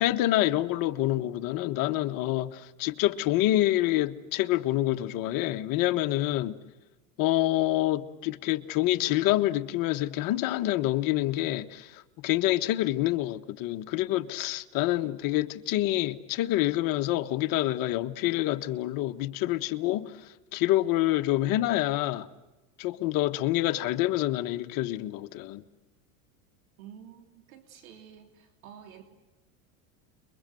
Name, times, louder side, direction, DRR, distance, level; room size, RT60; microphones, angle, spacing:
voice 1, 0.0-6.6 7.2-20.1 20.5-22.3 22.8-25.6, left 15 dB, 55° left, 1.6 m, -27 dB
voice 2, 26.8-29.0, right 9 dB, 85° right, 3.3 m, -49 dB
29.0 x 23.0 x 7.9 m
supercardioid pair, 115°, 40 cm